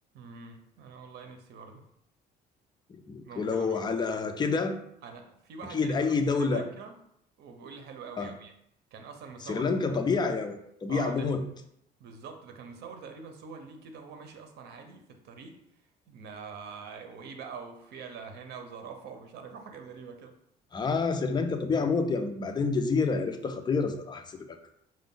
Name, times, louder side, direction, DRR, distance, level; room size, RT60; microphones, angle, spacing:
voice 1, 0.1-1.8 3.2-3.8 5.0-7.0 7.4-8.5 8.9-9.7 10.9-11.3 12.0-15.6 16.1-20.3, right 5 dB, 75° right, 5 dB, 0.7 m, -44 dB
voice 2, 2.9-4.8 5.7-6.7 8.2-8.3 9.4-11.4 20.7-24.6, left 4 dB, 25° left, 6 dB, 0.5 m, -28 dB
4.9 x 2.2 x 3.8 m, 0.74 s
cardioid pair, 110°, 17 cm